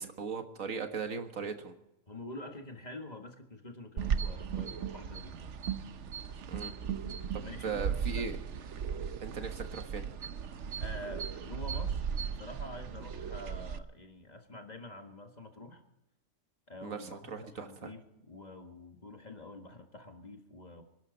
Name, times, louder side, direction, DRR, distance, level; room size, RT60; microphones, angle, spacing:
voice 1, 0.0-1.7 6.5-6.7 7.3-8.4 9.2-10.0 16.8-17.9, right 5 dB, 80° right, 7 dB, 1.9 m, -38 dB
voice 2, 2.1-5.5 7.4-8.3 10.8-15.8 16.7-18.0 18.3-20.8, left 1 dB, 30° left, 5 dB, 1.7 m, -47 dB
sound 1, 4.0-13.8, right 7 dB, 65° right, 1.1 m, -36 dB
25.5 x 11.5 x 4.0 m, 0.89 s
omnidirectional pair, 1.4 m